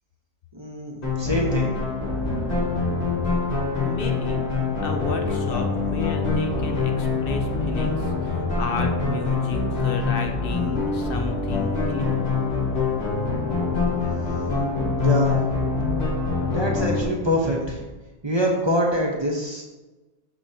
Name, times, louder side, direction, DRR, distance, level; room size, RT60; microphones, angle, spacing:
voice 1, 0.5-1.7 15.0-15.4 16.5-17.8 18.2-19.6, equal, 30° right, -1 dB, 0.8 m, -24 dB
sound 1, 1.0-17.0, left 4 dB, 40° left, 1.4 m, -24 dB
voice 2, 3.7-4.5 4.8-12.2, left 4 dB, 65° left, 5 dB, 0.7 m, -32 dB
6.3 x 5.4 x 2.7 m, 1.1 s
omnidirectional pair, 1.1 m